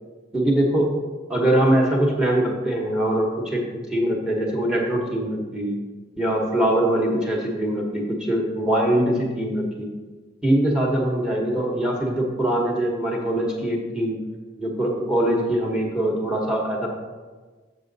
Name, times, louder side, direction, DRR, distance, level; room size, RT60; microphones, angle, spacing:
voice 1, 0.3-0.9 1.3-3.6 3.9-5.7 6.2-9.9 10.4-14.2 14.6-16.9, right 1 dB, 5° right, 0 dB, 1.0 m, -22 dB
6.9 x 6.8 x 4.0 m, 1.4 s
head